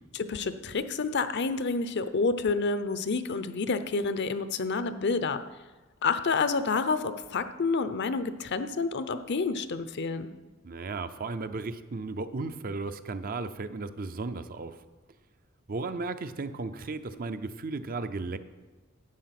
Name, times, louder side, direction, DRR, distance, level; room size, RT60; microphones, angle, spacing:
voice 1, 0.1-5.4 6.0-10.3, left 4 dB, 55° left, 11 dB, 0.6 m, -29 dB
voice 2, 10.6-14.8 15.7-18.4, right 3 dB, 40° right, 10 dB, 0.5 m, -35 dB
11.5 x 8.5 x 5.9 m, 1.2 s
head